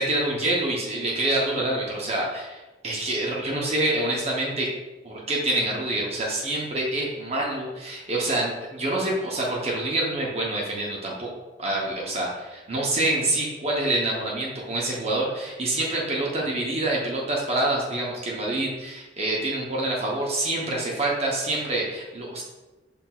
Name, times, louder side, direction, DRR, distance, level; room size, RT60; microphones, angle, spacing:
voice 1, 0.0-4.7 5.0-11.3 11.6-22.4, right 2 dB, 35° right, -3 dB, 0.7 m, -26 dB
5.7 x 3.4 x 2.3 m, 1.1 s
head